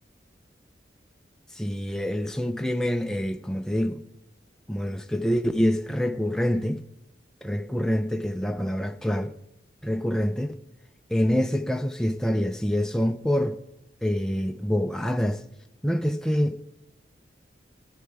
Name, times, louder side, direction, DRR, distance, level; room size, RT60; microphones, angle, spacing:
voice 1, 1.5-4.0 4.7-6.8 7.4-9.3 9.8-10.5 11.1-13.6 14.0-15.4 15.8-16.7, equal, 5° left, 0.4 m, -26 dB
18.0 x 11.0 x 3.4 m
head